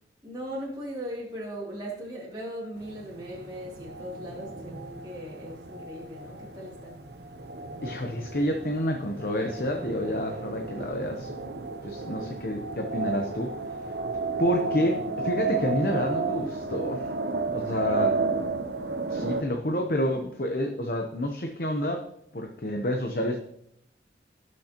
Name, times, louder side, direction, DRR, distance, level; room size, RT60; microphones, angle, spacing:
voice 1, 0.2-7.0 17.6-18.0, equal, 25° right, -6 dB, 2.8 m, -39 dB
sound 1, 2.8-19.4, right 3 dB, 70° right, 0.8 m, -33 dB
voice 2, 7.8-11.3 11.8-13.5 14.4-17.1 17.5-18.1 19.1-22.0 22.3-23.4, equal, 55° left, 3 dB, 0.9 m, -29 dB
17.5 x 6.3 x 2.9 m, 0.75 s
head